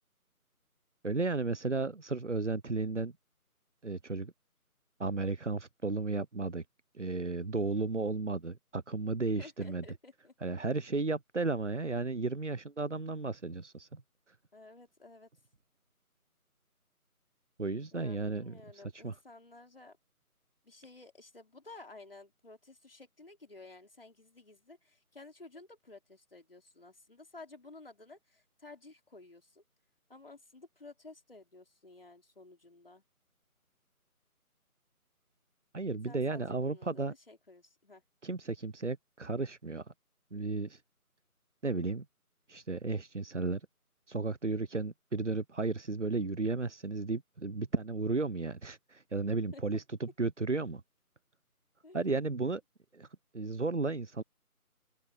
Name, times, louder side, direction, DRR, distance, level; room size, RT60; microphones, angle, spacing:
voice 1, 1.0-3.1 3.8-4.3 5.0-6.6 6.9-9.8 10.4-14.0 17.6-19.1 35.7-37.1 38.2-39.8 40.3-40.8 41.6-42.0 42.5-43.7 44.1-50.8 51.9-52.6 52.9-53.1 53.3-54.2, right 3 dB, 55° right, 0.8 m, -34 dB
voice 2, 9.4-10.3 14.5-15.3 17.9-20.0 20.6-29.6 30.1-33.0 36.1-38.0 49.5-49.6 51.8-52.3, left 3 dB, 40° left, 4.1 m, -53 dB
open air
figure-of-eight pair, 180°, 45 cm